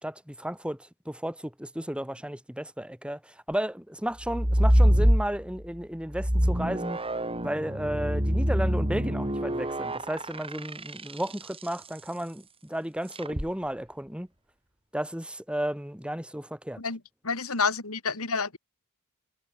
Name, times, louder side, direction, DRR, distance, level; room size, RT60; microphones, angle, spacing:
voice 1, 0.0-0.8 1.1-7.0 7.4-14.3 14.9-16.8, equal, 5° right, 4.5 m, -33 dB
sound 1, 4.2-5.7 6.1-11.6 13.2-13.5, equal, 25° right, 7.2 m, -25 dB
voice 2, 17.2-18.6, left 5 dB, 75° left, 3.1 m, -29 dB
head